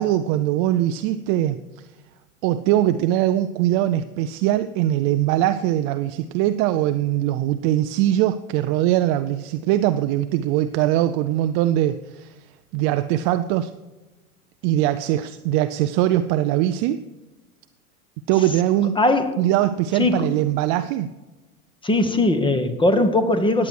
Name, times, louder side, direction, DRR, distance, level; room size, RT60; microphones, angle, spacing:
voice 1, 0.0-1.6 2.4-12.3 12.7-13.7 14.6-17.0 18.3-19.0 19.4-21.1, right 13 dB, 35° right, 11 dB, 0.4 m, -21 dB
voice 2, 19.0-19.4 19.9-20.3 21.8-23.7, left 2 dB, 10° left, 9 dB, 1.2 m, -20 dB
14.5 x 9.6 x 4.6 m, 1.2 s
hypercardioid pair, 100°, 45 cm